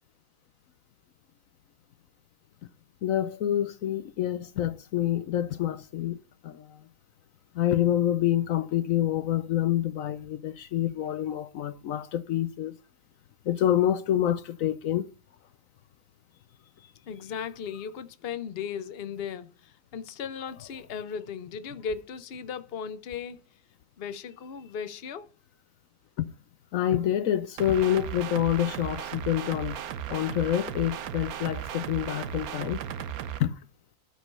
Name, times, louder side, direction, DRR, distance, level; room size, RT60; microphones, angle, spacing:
voice 1, 3.0-6.8 7.5-12.8 13.4-15.1 16.8-16.9 26.2-26.3 26.7-29.8 30.1-32.8 33.4-33.6, left 11 dB, 70° left, 1.1 m, -27 dB
voice 2, 17.1-23.4 24.0-25.3, left 7 dB, 50° left, 1.0 m, -37 dB
sound 1, 27.6-33.4, right 10 dB, 85° right, 1.3 m, -36 dB
12.5 x 5.1 x 5.5 m
omnidirectional pair, 1.5 m